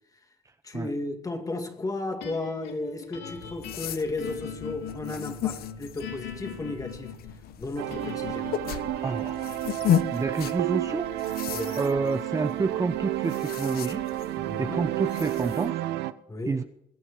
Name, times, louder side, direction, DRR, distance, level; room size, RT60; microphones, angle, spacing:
voice 1, 0.6-7.1 7.6-8.5 11.5-11.8 14.4-14.8 16.3-16.6, left 2 dB, 20° left, 2.4 m, -34 dB
sound 1, 2.2-14.5, left 7 dB, 85° left, 2.9 m, -42 dB
sound 2, 3.3-15.7, left 10 dB, 65° left, 1.1 m, -35 dB
sound 3, 7.8-16.1, right 14 dB, 80° right, 0.9 m, -31 dB
voice 2, 9.0-9.4 10.1-11.1 11.8-14.1 14.6-15.8 16.5-16.6, right 4 dB, 20° right, 0.8 m, -28 dB
22.0 x 9.0 x 5.1 m
cardioid pair, 110°, 17 cm